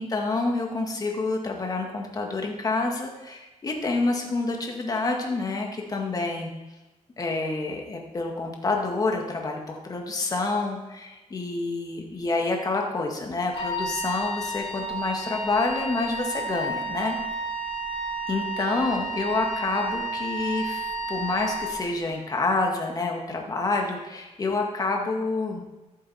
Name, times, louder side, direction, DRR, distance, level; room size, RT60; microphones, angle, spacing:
voice 1, 0.0-6.5 7.2-17.2 18.3-25.6, left 3 dB, 30° left, 1 dB, 2.0 m, -28 dB
Wind instrument woodwind instrument, 13.5-21.7, right 2 dB, 50° left, 2.3 m, -31 dB
14.0 x 7.4 x 4.4 m, 1.1 s
cardioid pair, 125°, 12 cm